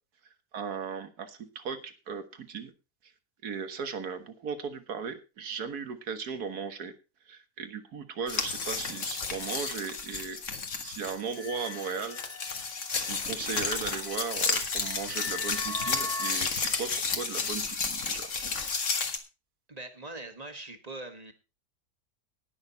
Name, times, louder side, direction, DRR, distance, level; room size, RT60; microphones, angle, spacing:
voice 1, 0.5-2.7 3.4-6.9 7.3-10.4 10.8-12.2 13.1-18.3, right 6 dB, 85° right, 8 dB, 1.9 m, -37 dB
sound 1, 8.3-19.2, left 4 dB, 55° left, 1.8 m, -32 dB
sound 2, 11.3-16.3, left 3 dB, 90° left, 3.6 m, -41 dB
voice 2, 19.7-21.3, right 2 dB, 25° right, 6 dB, 1.6 m, -42 dB
19.5 x 6.5 x 4.1 m, 0.30 s
omnidirectional pair, 1.6 m